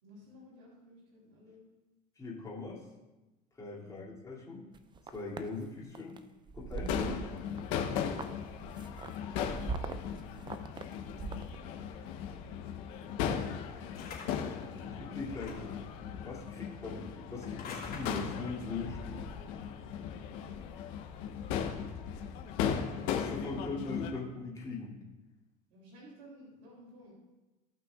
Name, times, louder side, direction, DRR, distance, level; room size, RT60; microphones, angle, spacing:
voice 1, 0.0-1.6 3.8-4.1 20.4-20.9 25.7-27.1, left 1 dB, 75° right, -4 dB, 3.3 m, -55 dB
voice 2, 2.2-2.8 3.5-4.6 5.1-6.2 6.5-7.2 14.9-15.7 16.2-19.3 23.1-24.9, left 3 dB, 15° left, -5 dB, 2.7 m, -40 dB
sound 1, 4.7-5.5 5.9-6.2 6.5-7.6 7.9-11.5, right 4 dB, 25° right, 0.6 m, -41 dB
Crowd / Fireworks, 6.8-24.1, left 8 dB, 75° left, 1.1 m, -37 dB
sound 2, 13.9-14.6 15.3-15.8 17.4-18.5, left 5 dB, 50° left, 2.5 m, -46 dB
17.5 x 5.8 x 2.4 m, 1.1 s
supercardioid pair, 115°, 20 cm